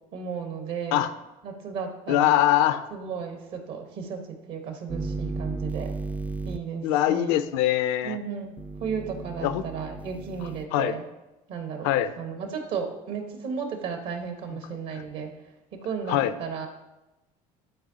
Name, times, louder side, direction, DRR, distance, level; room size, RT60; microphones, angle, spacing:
voice 1, 0.1-1.0 1.4-2.4 2.9-5.9 6.4-7.4 8.0-11.0 11.5-15.3 15.7-16.7, right 6 dB, 70° right, 4 dB, 1.4 m, -34 dB
voice 2, 2.1-2.9 6.8-8.2 9.4-9.6 10.7-10.9 11.8-12.1 16.1-16.3, left 12 dB, 70° left, 13 dB, 0.5 m, -22 dB
sound 1, 4.9-6.6 8.6-10.7, right 3 dB, 10° right, 0.3 m, -34 dB
11.5 x 4.7 x 2.8 m, 0.99 s
hypercardioid pair, 70°, 18 cm